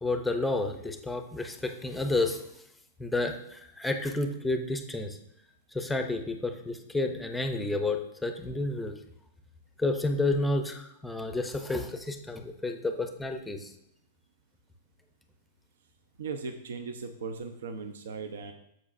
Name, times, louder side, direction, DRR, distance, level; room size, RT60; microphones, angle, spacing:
voice 1, 0.0-2.4 3.0-5.2 5.7-8.9 9.8-13.7, left 2 dB, 5° left, 5 dB, 0.5 m, -30 dB
voice 2, 16.2-18.5, right 5 dB, 85° right, 6 dB, 0.7 m, -38 dB
13.5 x 5.2 x 2.6 m, 0.77 s
supercardioid pair, 175°, 0 cm